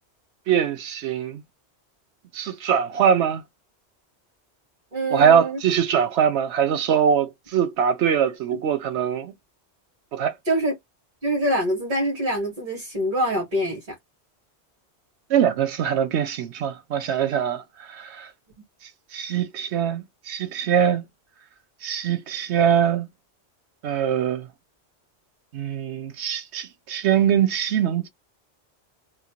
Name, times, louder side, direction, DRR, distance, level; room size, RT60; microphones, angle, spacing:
voice 1, 0.5-1.4 2.3-3.4 5.1-9.3 10.1-10.3 15.3-18.3 19.1-21.0 21.8-23.1 23.8-24.5 25.5-28.1, right 8 dB, 90° right, 0.9 m, -22 dB
voice 2, 4.9-5.6 10.4-10.7 11.2-13.8, right 1 dB, 50° right, 1.5 m, -24 dB
2.9 x 2.2 x 2.9 m
omnidirectional pair, 1.1 m